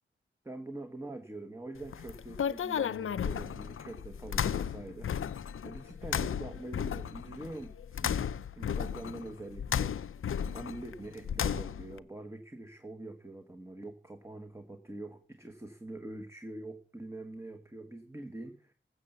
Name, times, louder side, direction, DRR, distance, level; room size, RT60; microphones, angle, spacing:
voice 1, 0.4-5.1 5.6-8.3 8.6-9.9 10.5-18.7, right 2 dB, 15° right, 6 dB, 1.2 m, -44 dB
sound 1, 1.8-12.0, left 8 dB, 80° left, 0.5 m, -34 dB
14.5 x 7.1 x 6.7 m, 0.43 s
wide cardioid pair, 85°, 21 cm